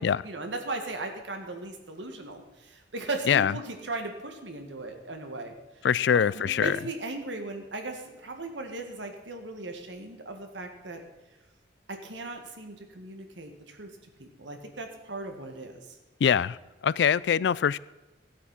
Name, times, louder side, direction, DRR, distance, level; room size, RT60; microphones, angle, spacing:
voice 1, 0.0-5.9 6.1-11.0 11.9-13.9 14.2-16.0, right 2 dB, 85° right, 1.9 m, -37 dB
voice 2, 5.8-6.8 16.2-16.6 16.8-17.8, left 8 dB, 70° left, 0.3 m, -23 dB
15.0 x 8.3 x 5.9 m
head